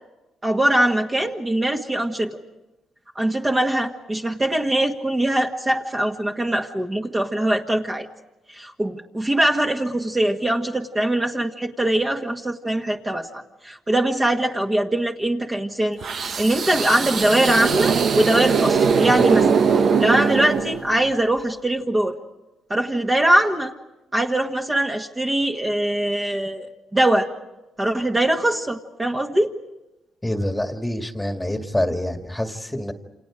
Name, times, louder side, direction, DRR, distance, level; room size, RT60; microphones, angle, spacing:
voice 1, 0.4-2.3 3.2-8.1 8.5-16.0 16.4-19.5 20.0-22.2 22.7-23.7 24.1-27.3 27.8-29.5, right 1 dB, 20° right, 2 dB, 1.8 m, -22 dB
sound 1, 16.0-21.1, right 5 dB, 55° right, 1.2 m, -20 dB
voice 2, 30.2-32.9, left 1 dB, 5° left, 6 dB, 2.0 m, -26 dB
29.0 x 27.5 x 5.0 m, 0.99 s
cardioid pair, 90°, 0 cm